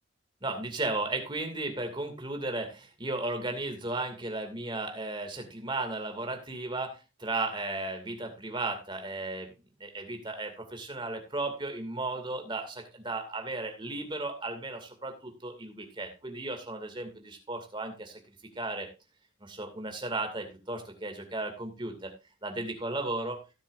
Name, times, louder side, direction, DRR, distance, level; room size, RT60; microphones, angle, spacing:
voice 1, 0.4-9.5 9.8-18.2 18.6-18.9 19.4-22.1 22.4-23.4, right 2 dB, 25° right, 5 dB, 2.4 m, -35 dB
16.5 x 7.3 x 2.6 m, 0.28 s
head